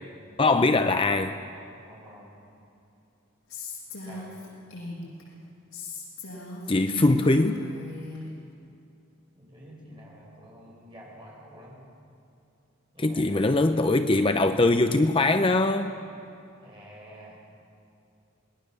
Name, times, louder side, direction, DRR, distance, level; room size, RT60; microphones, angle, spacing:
voice 1, 0.4-1.4 6.7-7.7 13.0-15.9, left 2 dB, 25° left, 8 dB, 0.6 m, -22 dB
voice 2, 1.8-2.3 4.0-4.3 9.4-11.8 12.9-13.4 16.6-17.4, equal, 20° right, -4 dB, 7.6 m, -48 dB
Female speech woman speaking, 3.5-5.2 5.7-8.2, left 2 dB, 75° left, 7.5 m, -39 dB
28.0 x 20.0 x 6.8 m, 2.6 s
head